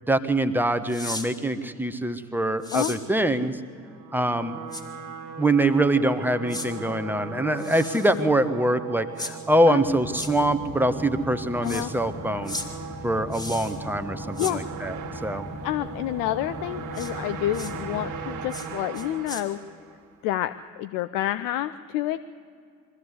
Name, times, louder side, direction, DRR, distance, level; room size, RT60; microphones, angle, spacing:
voice 1, 0.1-3.6 4.1-4.6 5.4-12.5 13.0-14.9 15.2-15.4, right 1 dB, 5° right, 10 dB, 1.3 m, -24 dB
sound 1, 0.9-1.3 2.6-3.0 4.7-4.8 6.5-6.7 7.6-8.2 9.2-9.3 10.1-10.3 11.6-11.9 12.4-12.7 13.3-13.8 14.3-14.5 16.9-17.1 17.5-17.7 18.5-18.7 18.9-19.4, left 1 dB, 10° left, 2.4 m, -35 dB
sound 2, 3.8-20.1, right 6 dB, 55° right, 2.0 m, -39 dB
sound 3, 9.8-18.4, left 1 dB, 85° left, 6.1 m, -39 dB
voice 2, 15.6-19.6 20.2-22.2, left 13 dB, 60° left, 13 dB, 0.6 m, -28 dB
23.0 x 14.5 x 8.3 m, 2.3 s
figure-of-eight pair, 40°, 37 cm